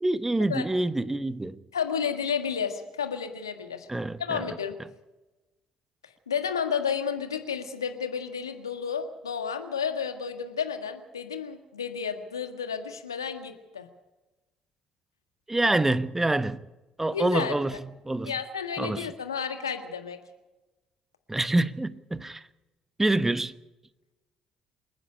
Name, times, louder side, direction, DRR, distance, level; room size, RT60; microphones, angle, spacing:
voice 1, 0.0-1.6 3.9-4.5 15.5-16.7 17.0-17.7 18.0-18.3 18.8-19.1 21.3-22.4 23.0-23.5, right 2 dB, 15° right, 1.1 m, -26 dB
voice 2, 1.7-3.9 4.2-4.8 6.0-13.8 17.1-17.5 18.2-20.2, left 7 dB, 85° left, 1.7 m, -31 dB
27.5 x 10.0 x 10.0 m
figure-of-eight pair, 50°, 2 cm